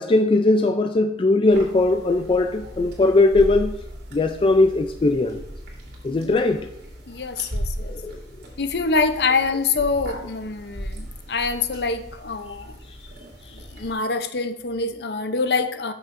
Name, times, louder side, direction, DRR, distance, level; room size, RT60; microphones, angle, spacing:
voice 1, 0.0-3.8 4.1-5.4 6.0-6.7 7.9-8.2, left 2 dB, 30° left, 0.3 m, -19 dB
sound 1, 1.5-13.9, equal, 65° right, 2.5 m, -37 dB
voice 2, 6.1-6.4 7.1-8.0 8.6-12.8 13.5-15.9, left 4 dB, 65° left, 0.6 m, -25 dB
12.0 x 6.1 x 2.6 m
head